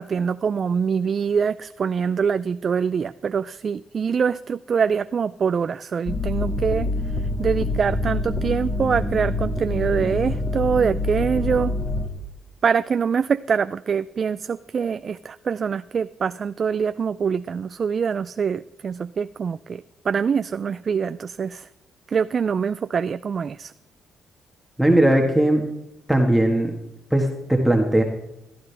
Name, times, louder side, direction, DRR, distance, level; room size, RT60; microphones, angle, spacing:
voice 1, 0.0-6.9 7.2-11.8 12.6-21.7 22.1-23.7, right 6 dB, 45° right, 13 dB, 0.3 m, -24 dB
sound 1, 6.1-12.1, left 2 dB, 25° left, 1.9 m, -26 dB
voice 2, 24.8-25.6 26.1-26.7 27.1-28.0, right 1 dB, ahead, 1 dB, 1.6 m, -18 dB
15.5 x 12.0 x 3.4 m, 0.87 s
cardioid pair, 90°, 0 cm